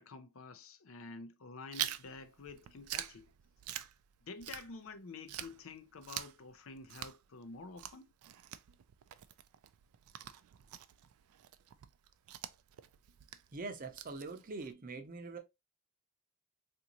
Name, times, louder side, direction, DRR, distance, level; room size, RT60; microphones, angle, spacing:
voice 1, 0.0-3.3 4.2-8.1, left 4 dB, 65° left, 0.5 m, -49 dB
Chewing mastication, 1.7-5.0 5.3-14.7, right 12 dB, 85° right, 0.4 m, -45 dB
voice 2, 13.5-15.4, right 3 dB, 40° right, 0.6 m, -43 dB
3.7 x 2.6 x 2.9 m
head